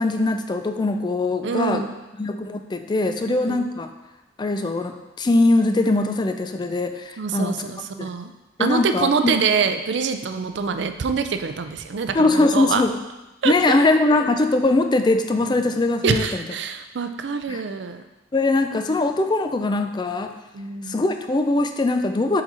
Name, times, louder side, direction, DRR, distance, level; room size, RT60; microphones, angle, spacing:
voice 1, 0.0-1.8 2.2-3.9 4.4-7.6 8.0-8.1 8.6-9.3 12.1-12.9 13.4-16.4 17.5-17.6 18.3-20.3 20.9-22.4, left 2 dB, 25° left, 7 dB, 0.4 m, -21 dB
voice 2, 1.4-1.9 3.3-3.7 7.2-8.3 8.6-12.8 13.4-13.8 16.0-18.0 20.5-21.0, right 5 dB, 65° right, 8 dB, 0.5 m, -25 dB
7.3 x 3.9 x 4.2 m, 1.1 s
head